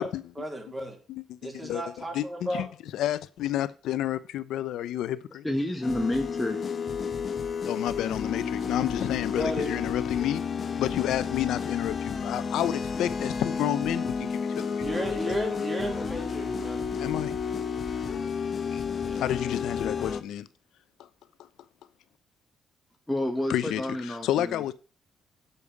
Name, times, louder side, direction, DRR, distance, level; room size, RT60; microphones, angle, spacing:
voice 1, 0.4-1.0 1.4-2.7 9.3-9.8 14.8-16.9 19.0-19.2, equal, 20° right, 3.7 m, -34 dB
voice 2, 1.1-2.7 2.9-5.4 7.6-10.4 10.8-15.4 16.9-17.4 18.7-18.8 19.1-20.5 23.5-24.7, left 12 dB, 85° left, 0.8 m, -30 dB
voice 3, 5.4-6.6 23.1-24.6, left 1 dB, 10° left, 1.3 m, -29 dB
sound 1, 5.8-20.2, left 6 dB, 45° left, 1.2 m, -31 dB
8.5 x 7.0 x 7.1 m
cardioid pair, 90°, 0 cm